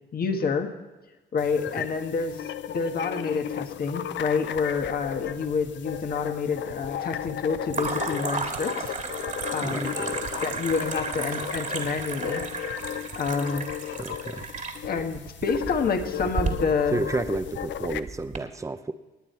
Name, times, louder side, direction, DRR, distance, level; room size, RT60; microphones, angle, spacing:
voice 1, 0.1-0.7 1.3-8.9 9.5-9.9 10.4-12.4 13.1-13.7 14.9-17.0, left 5 dB, 50° left, 5 dB, 1.5 m, -28 dB
sound 1, 1.4-18.0, left 10 dB, 65° left, 0.6 m, -35 dB
sound 2, 4.6-5.3 5.6-6.2 7.7-18.4, right 4 dB, 40° right, 2.0 m, -34 dB
sound 3, 6.7-18.0, right 9 dB, 60° right, 1.1 m, -44 dB
voice 2, 9.6-10.3 14.0-14.5 16.9-18.9, right 3 dB, 15° right, 10 dB, 0.8 m, -31 dB
19.0 x 9.0 x 4.4 m, 1.2 s
cardioid pair, 90°, 20 cm